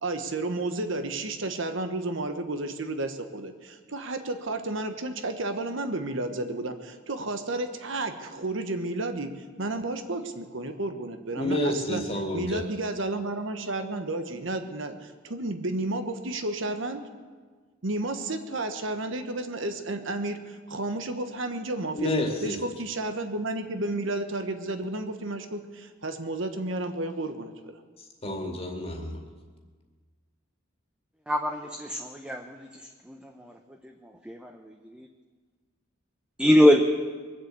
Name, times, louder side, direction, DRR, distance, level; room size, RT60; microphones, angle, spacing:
voice 1, 0.0-9.3 9.6-12.0 12.3-17.0 17.8-22.1 22.4-27.8, right 2 dB, 65° right, 7 dB, 1.2 m, -32 dB
voice 2, 11.4-12.6 21.9-22.6 28.2-29.2, left 1 dB, 30° left, 3 dB, 2.2 m, -29 dB
voice 3, 31.3-32.4 34.3-34.5 36.4-36.8, left 1 dB, 5° right, 3 dB, 0.7 m, -21 dB
22.0 x 7.6 x 8.2 m, 1.5 s
head